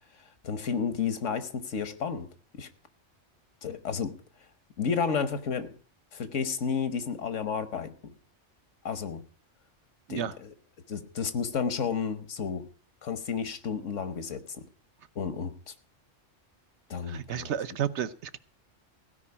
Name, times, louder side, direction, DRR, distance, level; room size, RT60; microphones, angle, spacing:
voice 1, 0.4-2.3 2.5-2.7 3.6-4.2 4.8-5.7 6.1-8.1 8.8-9.2 10.1-10.2 10.9-12.7 13.0-14.7 15.1-15.7 16.9-17.5, left 6 dB, 85° left, 1.5 m, -31 dB
voice 2, 17.0-18.4, right 9 dB, 70° right, 1.0 m, -32 dB
16.0 x 5.4 x 9.6 m
omnidirectional pair, 1.2 m